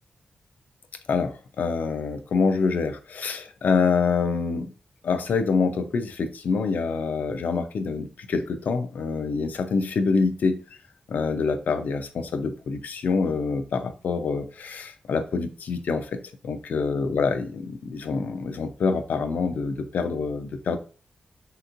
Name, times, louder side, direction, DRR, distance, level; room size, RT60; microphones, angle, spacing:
voice 1, 1.1-4.7 5.0-10.6 11.1-16.2 16.4-20.8, left 4 dB, 80° left, 8 dB, 0.4 m, -26 dB
3.5 x 2.8 x 2.5 m, 0.39 s
wide cardioid pair, 95°, 3 cm